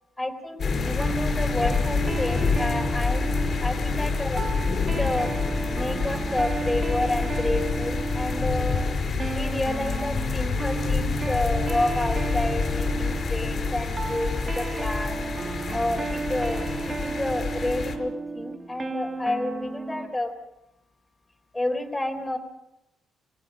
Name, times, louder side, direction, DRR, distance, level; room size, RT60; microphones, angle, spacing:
voice 1, 0.2-3.2 3.6-4.4 5.0-5.3 5.7-8.9 9.3-15.3 15.7-20.3 21.5-22.4, left 1 dB, 15° left, 3 dB, 3.8 m, -30 dB
sound 1, 0.6-18.0, left 4 dB, 50° left, 4.8 m, -27 dB
sound 2, 1.0-20.1, right 3 dB, 30° right, 1.8 m, -33 dB
28.0 x 16.5 x 6.4 m, 0.87 s
cardioid pair, 90°, 0 cm